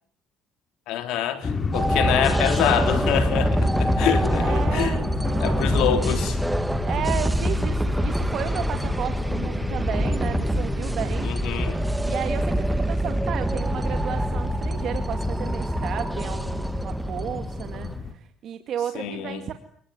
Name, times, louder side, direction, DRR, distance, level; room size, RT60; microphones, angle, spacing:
voice 1, 0.9-5.0 5.4-6.4 11.2-11.7 18.9-19.4, left 10 dB, 80° left, 4.1 m, -26 dB
sound 1, 1.4-18.1, left 4 dB, 35° left, 3.3 m, -31 dB
sound 2, 1.7-18.0, right 1 dB, 10° right, 2.2 m, -26 dB
voice 2, 4.4-5.8 6.9-11.3 12.0-19.5, right 9 dB, 60° right, 2.3 m, -33 dB
29.5 x 20.0 x 9.7 m
supercardioid pair, 85°, 0 cm